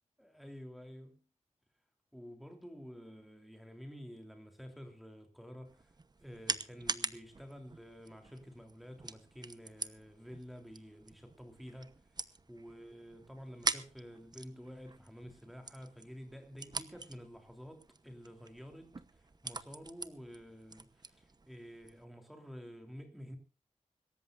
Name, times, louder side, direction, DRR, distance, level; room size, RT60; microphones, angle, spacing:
voice 1, 0.2-1.2 2.1-23.4, equal, ahead, 3.3 m, -50 dB
sound 1, 5.6-22.0, right 3 dB, 30° right, 0.9 m, -44 dB
25.5 x 14.0 x 2.6 m
wide cardioid pair, 125°, 13 cm